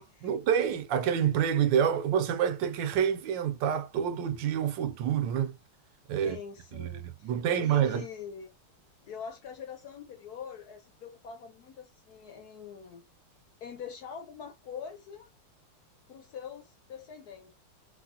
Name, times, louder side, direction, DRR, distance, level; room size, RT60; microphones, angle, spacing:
voice 1, 0.0-5.5 6.1-6.4 6.7-6.9 7.2-8.0, right 9 dB, 75° right, 1.2 m, -27 dB
voice 2, 6.2-8.5 9.1-13.1 13.6-15.3 16.1-17.6, left 7 dB, 65° left, 1.0 m, -44 dB
3.1 x 3.0 x 2.7 m
omnidirectional pair, 2.1 m